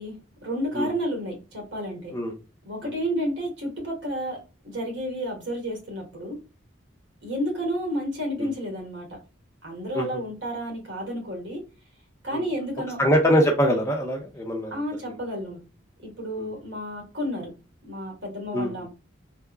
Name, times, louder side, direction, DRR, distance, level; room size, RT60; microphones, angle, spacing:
voice 1, 0.0-2.1 2.6-4.4 4.6-6.4 7.2-9.2 9.6-11.6 12.2-13.0 14.7-15.6 16.0-17.5 17.8-18.9, equal, 65° right, 0 dB, 1.5 m, -31 dB
voice 2, 13.0-14.8 16.4-16.5 18.5-18.9, equal, 15° left, 1 dB, 0.6 m, -23 dB
3.4 x 2.0 x 2.3 m, 0.31 s
head